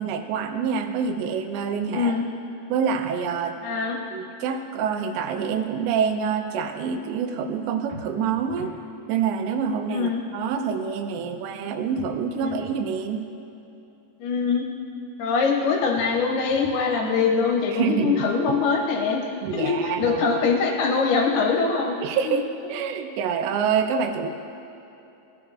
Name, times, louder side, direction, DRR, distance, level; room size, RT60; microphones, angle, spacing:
voice 1, 0.0-2.2 2.7-3.5 4.1-8.7 9.1-13.3 17.7-18.3 19.4-20.5 22.0-22.4 22.7-24.3, right 6 dB, 85° right, 6 dB, 2.9 m, -26 dB
voice 2, 1.9-2.2 3.6-4.0 9.9-10.2 12.4-12.6 14.2-14.7 15.2-19.2 19.5-22.0 22.2-22.3, left 5 dB, 75° left, 1 dB, 2.6 m, -23 dB
sound 1, 7.9-8.8 12.0-12.8 15.9-16.8 19.4-20.4, right 3 dB, 65° right, 2.4 m, -44 dB
17.0 x 9.9 x 2.4 m, 2.9 s
omnidirectional pair, 5.0 m